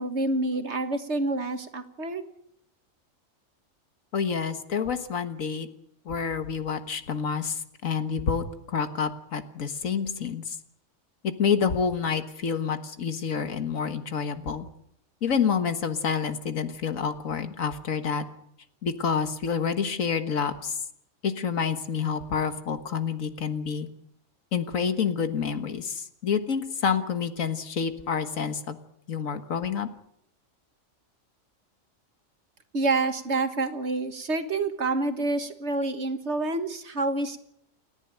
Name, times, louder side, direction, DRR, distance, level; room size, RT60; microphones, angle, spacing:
voice 1, 0.0-2.2 32.7-37.4, right 2 dB, 55° right, 8 dB, 1.8 m, -28 dB
voice 2, 4.1-5.7 6.1-10.6 11.2-14.7 15.2-18.2 18.8-20.8 21.2-23.9 24.5-28.8 29.1-29.9, left 6 dB, 85° left, 9 dB, 1.9 m, -28 dB
28.5 x 11.0 x 9.2 m, 0.75 s
omnidirectional pair, 1.4 m